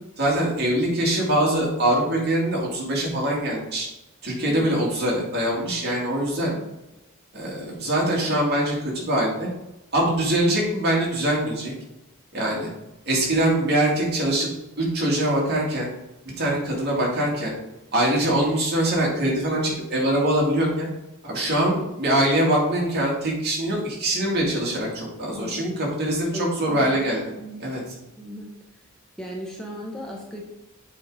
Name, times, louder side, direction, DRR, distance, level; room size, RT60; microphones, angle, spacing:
voice 1, 0.2-3.9 4.2-6.5 7.3-9.5 9.9-11.7 12.3-12.7 13.1-14.5 14.8-15.9 16.4-17.5 17.9-20.9 21.2-27.2 27.6-27.8, right 1 dB, 50° right, -3 dB, 2.4 m, -23 dB
voice 2, 25.3-25.8 26.3-27.1 27.4-27.6 28.2-28.5 29.2-30.4, left 1 dB, 5° left, -2 dB, 0.9 m, -36 dB
7.6 x 3.8 x 4.9 m, 0.96 s
head